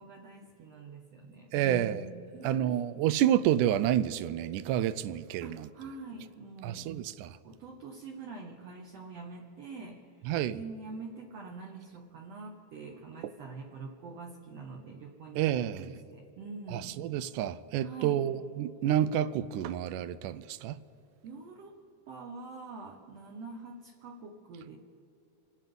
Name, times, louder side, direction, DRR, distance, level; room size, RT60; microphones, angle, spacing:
voice 1, 0.0-2.8 5.4-6.9 7.4-17.0 17.8-18.2 21.2-21.7 22.1-24.8, right 3 dB, 60° right, 2.1 m, -45 dB
voice 2, 1.5-2.1 2.4-5.7 6.6-7.4 10.3-10.6 15.4-15.9 16.7-20.8, right 11 dB, 85° right, 2.1 m, -29 dB
26.5 x 10.0 x 5.4 m
omnidirectional pair, 3.6 m